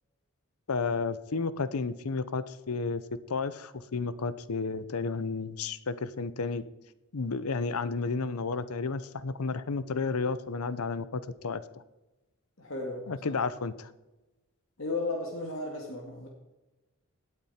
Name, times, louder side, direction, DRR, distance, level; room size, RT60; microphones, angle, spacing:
voice 1, 0.7-3.0 3.3-6.6 7.1-11.8 13.1-13.9, left 4 dB, 90° left, 15 dB, 0.7 m, -32 dB
voice 2, 12.6-13.1 14.8-16.3, left 2 dB, 65° left, 0 dB, 2.2 m, -34 dB
17.0 x 8.9 x 4.3 m, 1.1 s
head